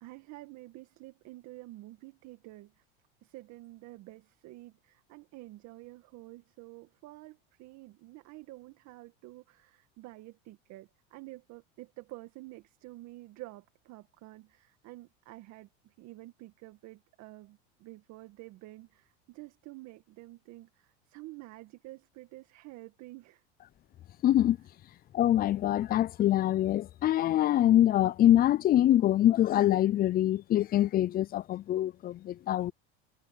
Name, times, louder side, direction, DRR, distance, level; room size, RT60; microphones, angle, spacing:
voice 1, 0.0-2.8 3.2-23.4, right 19 dB, 55° right, 2.0 m, -49 dB
voice 2, 24.2-24.6 25.1-32.7, left 12 dB, 30° left, 0.5 m, -24 dB
supercardioid pair, 110°, 33 cm